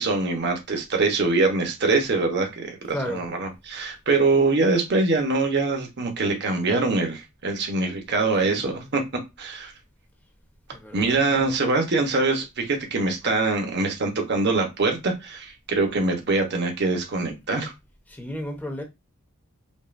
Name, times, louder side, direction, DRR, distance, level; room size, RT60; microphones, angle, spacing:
voice 1, 0.0-9.0 9.4-9.7 10.9-17.7, right 3 dB, 55° right, 1.0 m, -23 dB
voice 2, 2.9-3.2 8.4-8.7 10.7-11.6 18.1-18.8, equal, 10° left, 0.9 m, -34 dB
5.4 x 2.4 x 2.5 m
head